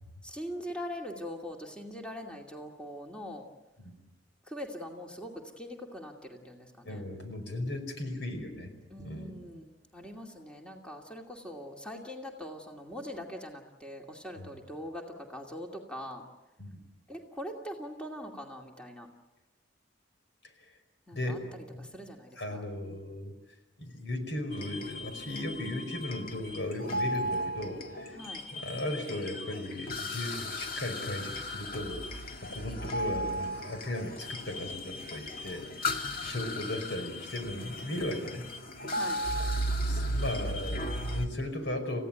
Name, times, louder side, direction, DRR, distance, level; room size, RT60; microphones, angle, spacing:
voice 1, 0.2-3.5 4.5-7.1 8.9-16.2 17.1-19.1 21.1-23.1 28.2-28.5 32.8-32.9 36.3-37.3 38.9-39.3, equal, 5° left, 1 dB, 2.5 m, -42 dB
voice 2, 6.8-8.7 9.0-9.4 14.4-14.5 16.6-16.8 21.1-21.9 22.4-23.3 23.8-28.2 28.5-35.9 36.2-38.5 39.9-42.1, left 1 dB, 75° left, 5 dB, 5.2 m, -36 dB
sound 1, 24.5-41.3, equal, 55° left, 2.1 m, -36 dB
30.0 x 16.5 x 9.1 m, 1.1 s
head